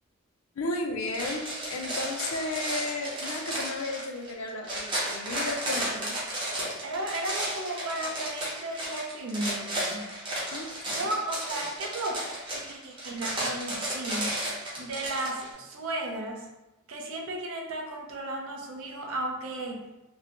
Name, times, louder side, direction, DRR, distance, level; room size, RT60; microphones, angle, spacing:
voice 1, 0.6-6.2 10.5-11.1, left 2 dB, 75° left, 3 dB, 0.4 m, -34 dB
sound 1, 1.1-15.5, right 1 dB, 25° right, 0.7 m, -33 dB
voice 2, 6.8-10.1 10.9-12.2 12.5-14.5 14.8-16.5 16.9-19.8, right 1 dB, 65° right, 1 dB, 0.5 m, -34 dB
2.6 x 2.1 x 2.9 m, 0.99 s
head